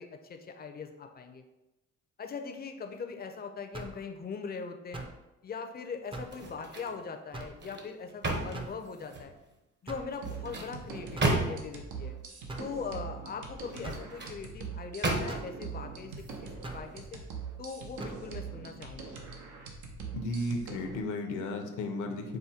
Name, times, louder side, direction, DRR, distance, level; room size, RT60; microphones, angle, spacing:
voice 1, 0.0-1.4 2.2-5.1 5.4-9.3 9.8-12.1 12.6-17.2 17.6-19.2, left 5 dB, 30° left, 5 dB, 0.5 m, -41 dB
sound 1, 3.7-4.1 4.9-5.2 6.1-6.4 7.3-7.6 8.5-8.8 9.9-10.2 11.2-11.4 12.5-12.7 13.8-14.1 15.3-15.5 16.6-16.9 18.0-18.2, right 2 dB, 15° right, 0.5 m, -41 dB
sound 2, 6.2-7.0 7.4-9.4 10.1-11.8 13.6-14.4 15.0-15.6 16.1-16.3, right 2 dB, 35° right, 0.8 m, -34 dB
sound 3, 10.2-21.0, right 5 dB, 80° right, 0.8 m, -43 dB
voice 2, 20.1-22.4, left 2 dB, 75° left, 4 dB, 0.8 m, -34 dB
5.0 x 2.2 x 4.2 m, 0.99 s
cardioid pair, 90°, 30 cm